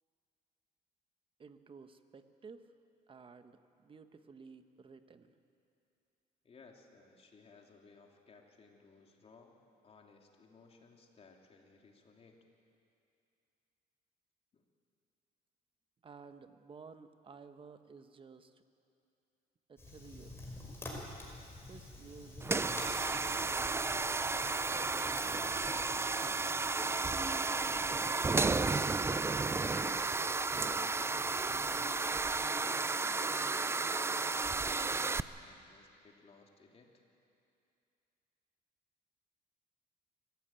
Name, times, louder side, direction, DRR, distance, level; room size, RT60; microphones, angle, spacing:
voice 1, 1.4-2.7 3.1-5.3 16.0-18.6 19.7-20.5 21.7-22.5 23.5-25.4 25.7-26.5, right 5 dB, 30° right, 9 dB, 1.2 m, -55 dB
voice 2, 6.4-9.5 9.8-12.4 14.5-14.6 28.4-30.1 30.6-32.0 32.3-37.0, left 4 dB, 35° left, 1 dB, 3.1 m, -59 dB
Fire, 19.8-32.4, left 2 dB, 15° left, 5.4 m, -50 dB
sound 1, 22.4-35.2, right 3 dB, 15° right, 0.5 m, -33 dB
25.0 x 15.5 x 9.1 m, 2.6 s
cardioid pair, 110°, 17 cm